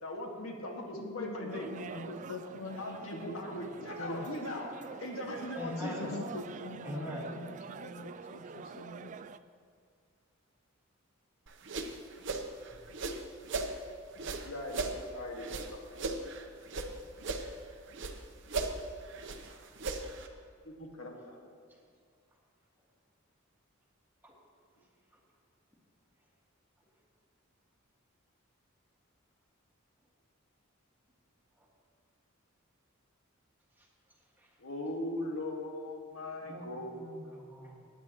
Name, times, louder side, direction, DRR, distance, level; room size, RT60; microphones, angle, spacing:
voice 1, 0.0-1.7 2.7-4.7 5.0-6.1 14.4-14.9 15.1-15.7 15.9-16.2 20.6-21.4 34.6-37.0, left 1 dB, 85° left, 0 dB, 1.8 m, -40 dB
voice 2, 1.0-4.3 5.8-9.2, left 2 dB, 65° left, 3 dB, 0.7 m, -43 dB
sound 1, 1.5-9.4, right 5 dB, 35° right, 0.3 m, -46 dB
voice 3, 5.5-6.1 6.8-7.3 19.4-19.6 21.7-21.8 24.2-24.4 25.1-25.2 31.6-31.7 33.8-34.6 36.4-37.9, left 1 dB, 10° right, -3 dB, 1.8 m, -44 dB
sound 2, 11.5-13.7 14.1-16.9 17.2-18.2 18.5-20.3, right 3 dB, 60° right, 0.9 m, -37 dB
19.5 x 9.4 x 3.0 m, 2.1 s
head